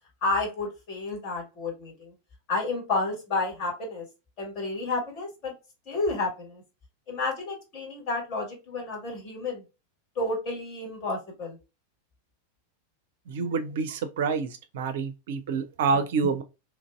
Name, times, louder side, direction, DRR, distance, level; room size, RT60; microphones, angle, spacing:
voice 1, 0.2-2.1 2.5-4.1 4.4-5.5 5.9-6.6 7.1-9.6 10.2-11.6, left 3 dB, 45° left, 1.8 m, -31 dB
voice 2, 13.3-16.4, right 5 dB, 55° right, 0.4 m, -27 dB
2.9 x 2.5 x 2.2 m
figure-of-eight pair, 90°, 0 cm